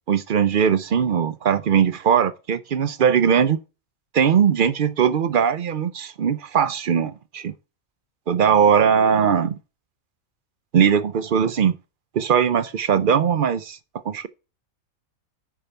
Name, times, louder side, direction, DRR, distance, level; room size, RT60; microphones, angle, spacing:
voice 1, 0.1-3.6 4.1-7.5 8.3-9.6 10.7-11.8 12.1-13.8 14.0-14.3, right 7 dB, 60° right, 0.5 m, -20 dB
6.3 x 5.6 x 6.8 m
omnidirectional pair, 1.5 m